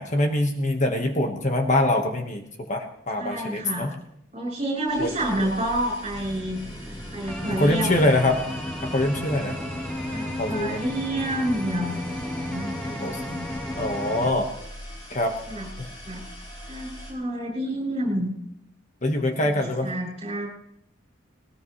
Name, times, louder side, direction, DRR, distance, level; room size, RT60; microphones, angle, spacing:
voice 1, 0.0-3.9 5.0-5.1 5.4-5.5 7.6-8.4 8.8-9.6 10.4-10.8 13.0-13.2 13.7-14.5 15.1-15.3 15.8-15.9 19.0-19.9, left 1 dB, 40° left, 3 dB, 1.5 m, -24 dB
voice 2, 3.2-3.9 4.3-6.6 7.1-8.0 10.1-13.7 15.5-15.7 16.1-16.2 16.7-18.3 19.4-20.5, right 1 dB, 35° right, -2 dB, 7.4 m, -29 dB
sound 1, 4.9-17.1, equal, 25° left, 6.4 m, -43 dB
sound 2, 6.1-14.3, left 1 dB, 5° left, 1.7 m, -33 dB
21.0 x 19.5 x 3.3 m, 0.73 s
head